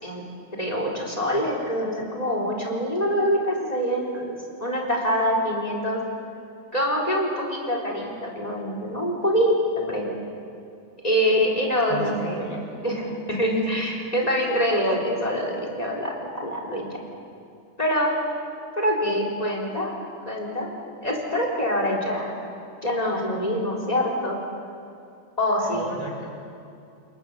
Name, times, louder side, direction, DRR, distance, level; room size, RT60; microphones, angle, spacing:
voice 1, 0.6-6.0 6.7-10.1 11.0-12.6 12.8-13.0 13.3-16.9 17.8-18.1 18.7-19.9 20.3-20.7 21.0-22.3 22.8-24.4 25.4-25.9, equal, 25° left, 0 dB, 4.1 m, -25 dB
voice 2, 11.9-12.9 25.7-26.3, equal, 25° right, -2 dB, 2.3 m, -35 dB
28.5 x 22.0 x 7.1 m, 2.5 s
omnidirectional pair, 1.5 m